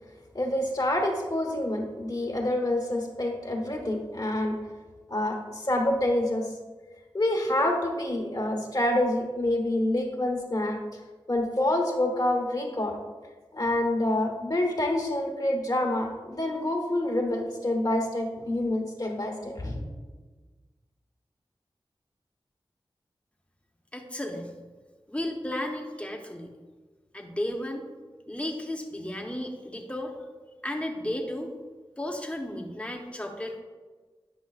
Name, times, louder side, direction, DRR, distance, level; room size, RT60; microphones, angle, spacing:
voice 1, 0.3-4.5 5.1-6.4 7.1-10.8 11.3-13.0 13.5-19.8, left 1 dB, 45° left, 1 dB, 1.2 m, -27 dB
voice 2, 23.9-24.5 25.1-26.5 27.1-27.9 28.3-30.3 30.6-31.5 32.0-33.6, left 1 dB, 15° left, 2 dB, 1.0 m, -34 dB
9.7 x 5.8 x 2.4 m, 1.3 s
wide cardioid pair, 65°, 9 cm